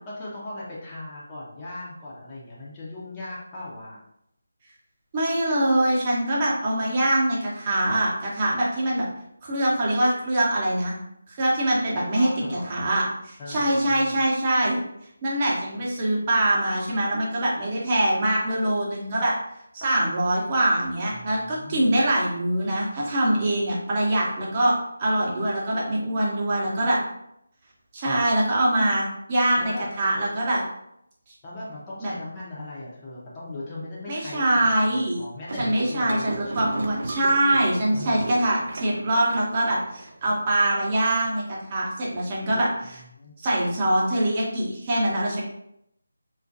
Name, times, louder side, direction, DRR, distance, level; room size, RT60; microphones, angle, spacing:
voice 1, 0.2-4.0 11.9-12.9 13.4-14.2 21.1-22.0 29.6-29.9 31.4-36.8 37.9-38.3 42.5-42.6 43.1-43.4, left 2 dB, 20° left, -7 dB, 0.5 m, -38 dB
voice 2, 5.1-9.0 9.4-10.9 11.4-13.0 13.3-14.8 15.2-19.3 19.7-24.7 25.0-27.0 27.9-30.6 32.0-32.1 34.1-35.2 35.6-43.0 43.4-45.4, right 1 dB, 25° right, -5 dB, 0.7 m, -23 dB
sound 1, 35.5-40.4, right 2 dB, 55° right, 0.3 m, -36 dB
2.3 x 2.1 x 2.6 m, 0.76 s
figure-of-eight pair, 160°, 0 cm